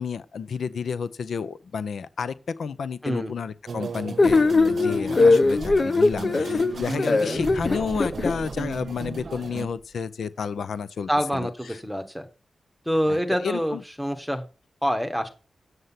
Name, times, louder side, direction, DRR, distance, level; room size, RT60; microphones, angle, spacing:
voice 1, 0.0-11.8 13.1-13.8, left 6 dB, 80° left, 0.6 m, -31 dB
sound 1, 3.7-9.7, right 5 dB, 55° right, 0.8 m, -35 dB
sound 2, 4.2-8.3, left 3 dB, 35° left, 0.6 m, -20 dB
sound 3, 6.6-7.0 7.3-9.9, right 3 dB, 30° right, 1.0 m, -40 dB
voice 2, 11.1-12.3 12.8-14.4 14.8-15.3, equal, ahead, 1.4 m, -26 dB
8.0 x 7.9 x 5.7 m
wide cardioid pair, 170°, 0 cm